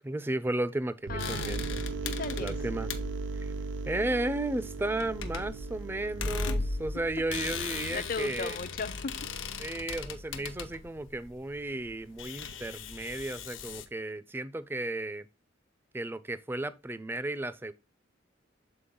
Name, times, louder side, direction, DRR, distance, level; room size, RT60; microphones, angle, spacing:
voice 1, 0.0-1.8 2.4-2.9 3.4-3.5 3.8-8.6 9.6-15.3 15.9-17.7, right 2 dB, 10° right, 0.3 m, -34 dB
voice 2, 1.1-1.6 2.0-2.6 6.5-6.7 7.9-9.3, left 4 dB, 50° left, 0.5 m, -37 dB
sound 1, 1.1-8.6, right 3 dB, 70° right, 0.5 m, -38 dB
sound 2, 1.2-13.8, left 4 dB, 85° left, 0.8 m, -38 dB
6.9 x 4.1 x 3.6 m
head